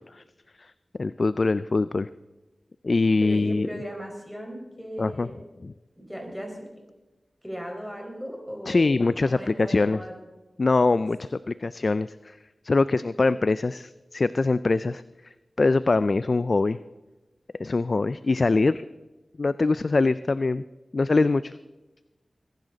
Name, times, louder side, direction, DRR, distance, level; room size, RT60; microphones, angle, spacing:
voice 1, 1.0-2.1 2.8-3.7 5.0-5.3 5.6-5.7 8.7-10.0 10.6-12.4 12.6-15.0 15.6-16.8 17.6-18.8 19.4-20.6 20.9-21.6, left 3 dB, 60° left, 15 dB, 0.3 m, -23 dB
voice 2, 3.2-5.4 6.0-6.7 7.4-10.1 13.2-13.3, equal, 5° left, 1 dB, 4.9 m, -37 dB
21.0 x 10.5 x 4.0 m, 1.1 s
cardioid pair, 45°, 0 cm